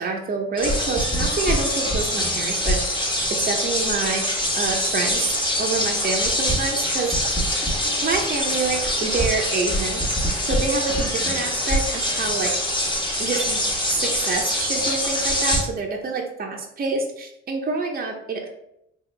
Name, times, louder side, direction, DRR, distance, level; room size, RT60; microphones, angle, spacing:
voice 1, 0.0-4.2 4.5-5.3 5.6-7.1 8.0-10.0 10.5-12.5 13.2-13.6 13.9-18.5, right 4 dB, 30° right, 1 dB, 0.7 m, -27 dB
sound 1, 0.6-15.6, left 1 dB, 15° left, 1.2 m, -24 dB
3.9 x 2.8 x 3.3 m, 0.79 s
cardioid pair, 90°, 30 cm